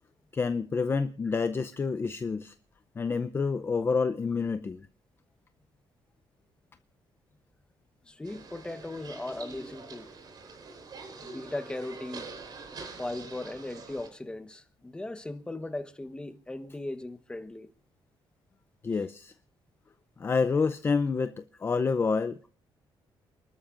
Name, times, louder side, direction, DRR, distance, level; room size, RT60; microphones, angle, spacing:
voice 1, 0.3-2.5 3.0-4.8 18.8-19.3 20.2-22.5, left 4 dB, 25° left, 0.6 m, -28 dB
voice 2, 8.1-10.1 11.2-12.3 13.0-17.7, left 2 dB, 10° left, 1.1 m, -38 dB
sound 1, 8.2-14.1, right 4 dB, 50° right, 4.2 m, -45 dB
29.0 x 13.0 x 2.5 m
cardioid pair, 135°, 9 cm